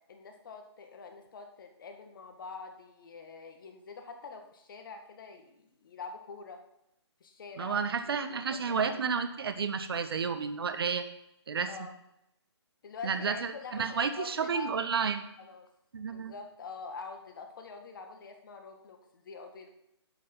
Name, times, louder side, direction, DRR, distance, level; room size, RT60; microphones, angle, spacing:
voice 1, 0.1-6.6 7.2-8.4 8.7-8.9 11.7-11.9 12.8-14.7 15.4-15.7 16.0-19.7, left 4 dB, 50° left, 5 dB, 1.9 m, -45 dB
voice 2, 7.6-11.1 11.5-11.7 13.0-15.3 15.9-16.3, right 6 dB, 60° right, 9 dB, 1.3 m, -31 dB
11.0 x 6.3 x 7.2 m, 0.82 s
figure-of-eight pair, 145°, 15 cm